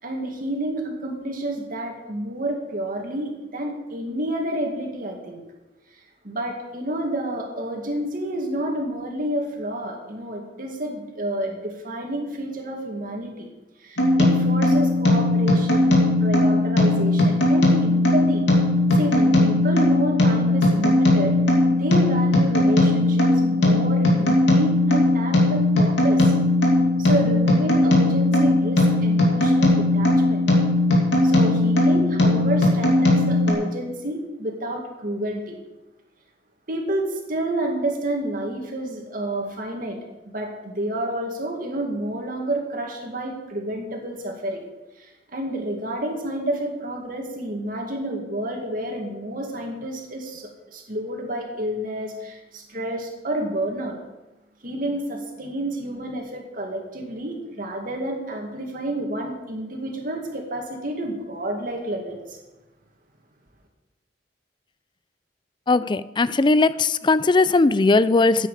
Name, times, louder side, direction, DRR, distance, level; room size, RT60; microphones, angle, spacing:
voice 1, 0.0-5.4 6.2-13.5 13.8-18.4 18.9-21.4 21.7-26.3 27.0-30.4 31.2-35.6 36.7-40.0 40.3-44.6 45.0-54.0 54.6-62.4, right 1 dB, 50° right, 2 dB, 2.3 m, -29 dB
sound 1, 14.0-33.5, left 1 dB, 80° left, 2.8 m, -18 dB
voice 2, 65.7-68.5, left 3 dB, 25° left, 16 dB, 0.4 m, -18 dB
14.5 x 9.2 x 5.0 m, 1.1 s
head